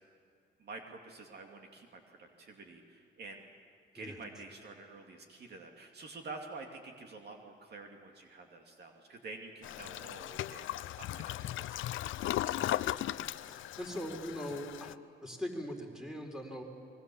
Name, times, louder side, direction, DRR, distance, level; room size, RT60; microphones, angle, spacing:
voice 1, 0.6-3.5 3.9-10.7 11.0-12.7, right 3 dB, 55° right, 2 dB, 2.5 m, -49 dB
Toilet flush, 9.6-14.9, left 13 dB, 80° left, 0.6 m, -37 dB
voice 2, 13.5-15.0 15.2-16.6, equal, 5° right, 2 dB, 4.1 m, -41 dB
28.0 x 22.0 x 7.1 m, 2.3 s
cardioid pair, 90°, 20 cm